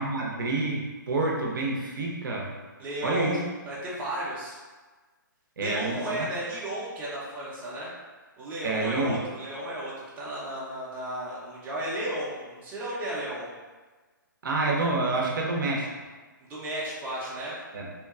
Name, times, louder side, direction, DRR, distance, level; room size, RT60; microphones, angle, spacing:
voice 1, 0.0-2.5 3.0-3.4 5.6-6.3 8.6-9.2 14.4-15.9 17.7-17.9, right 2 dB, 70° right, -2 dB, 0.5 m, -28 dB
voice 2, 2.8-4.6 5.6-7.9 8.4-13.5 16.5-17.5, right 1 dB, 15° right, -7 dB, 0.6 m, -34 dB
2.8 x 2.2 x 2.3 m, 1.3 s
hypercardioid pair, 140°, 11 cm